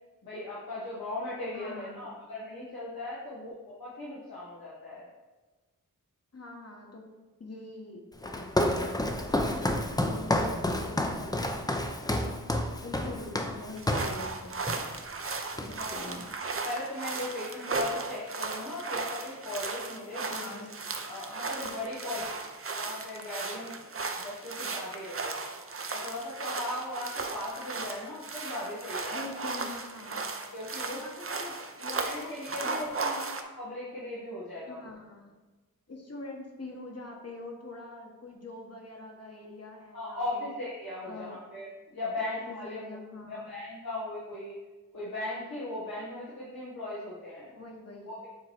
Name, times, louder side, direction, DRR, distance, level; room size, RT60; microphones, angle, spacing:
voice 1, 0.2-5.1 15.7-16.2 16.6-20.4 21.1-22.3 22.6-23.8 24.1-25.4 25.9-29.3 30.4-31.0 32.0-34.9 39.9-41.7 41.9-42.8 43.3-44.5 44.9-47.5 48.0-48.3, left 2 dB, 85° left, -8 dB, 1.3 m, -38 dB
voice 2, 1.5-2.1 6.3-7.0 7.4-12.2 12.8-14.6 15.5-16.2 20.2-20.7 29.1-30.2 30.9-32.3 32.6-33.4 34.7-35.3 35.9-40.5 41.0-41.4 42.2-43.5 47.5-48.1, left 2 dB, 45° left, 1 dB, 1.3 m, -44 dB
Walk footsteps, 8.2-14.2 14.7-14.9 15.2-16.0, left 1 dB, 10° left, 0.6 m, -30 dB
sound 1, 13.8-33.4, right 4 dB, 40° right, 0.6 m, -36 dB
7.3 x 3.0 x 4.5 m, 1.2 s
wide cardioid pair, 50°, 35 cm